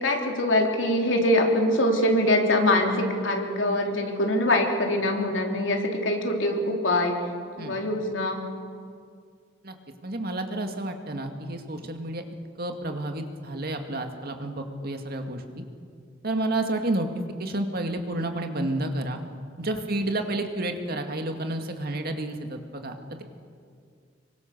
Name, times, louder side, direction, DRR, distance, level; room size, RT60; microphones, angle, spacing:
voice 1, 0.0-7.2 7.6-8.4, left 1 dB, 85° left, 1 dB, 3.6 m, -23 dB
voice 2, 10.0-12.2 12.6-15.4 16.2-17.1 17.4-19.2 19.6-23.2, right 1 dB, 55° right, 5 dB, 2.2 m, -30 dB
25.5 x 23.5 x 6.8 m, 2.2 s
head